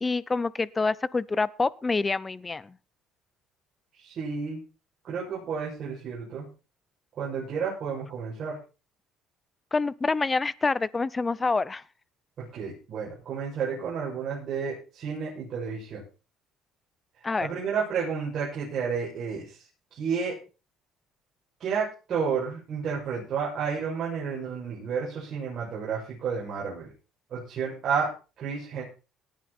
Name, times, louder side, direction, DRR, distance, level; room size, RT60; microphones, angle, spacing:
voice 1, 0.0-2.7 9.7-11.8 17.2-17.5, left 3 dB, 20° left, 0.6 m, -27 dB
voice 2, 4.0-4.6 5.0-6.5 7.2-8.6 12.5-16.0 17.4-19.6 19.9-20.4 21.6-26.9 27.3-28.1 28.4-28.8, right 6 dB, 45° right, 7.0 m, -31 dB
18.5 x 10.5 x 4.4 m
cardioid pair, 130°, 0 cm